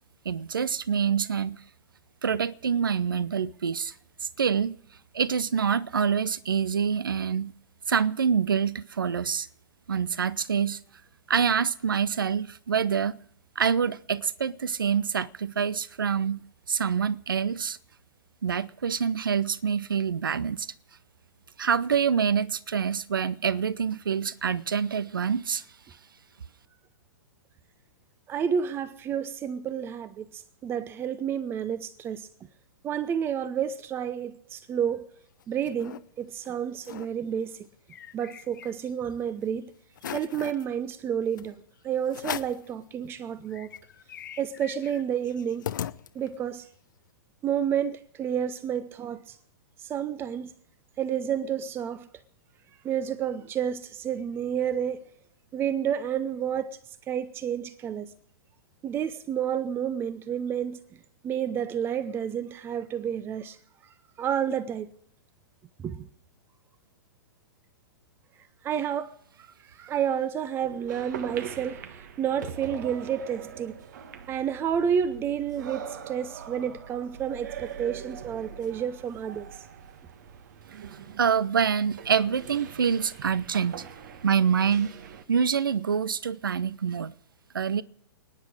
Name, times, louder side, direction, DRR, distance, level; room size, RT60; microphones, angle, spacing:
voice 1, 0.2-1.6 2.2-3.9 4.2-4.8 5.1-7.5 7.9-9.5 9.9-10.8 11.3-13.2 13.6-16.4 16.7-17.8 18.4-20.7 21.6-25.6 81.2-83.8 84.2-84.9 85.3-87.1 87.5-87.8, right 7 dB, 70° right, 0.7 m, -26 dB
voice 2, 28.3-32.3 32.8-35.0 35.5-37.7 38.1-39.7 40.1-41.5 41.8-43.7 44.4-45.6 46.1-46.7 47.4-49.4 49.8-50.5 51.0-52.1 52.8-55.0 55.5-56.8 57.1-58.1 58.8-60.8 61.2-63.6 64.2-64.9 65.8-66.1 68.6-69.1 69.4-73.8 74.3-79.5, right 8 dB, 20° right, 0.8 m, -30 dB
sound 1, 35.2-36.0 36.4-36.5 36.8-37.1 37.5-39.1 39.5-39.6 39.9-40.7 41.4-41.5 42.1-42.7 43.2-43.3 43.5-46.5, left 9 dB, 60° left, 0.9 m, -39 dB
sound 2, 70.6-85.2, right 8 dB, 50° right, 1.4 m, -43 dB
29.5 x 10.0 x 4.9 m
figure-of-eight pair, 110°, 12 cm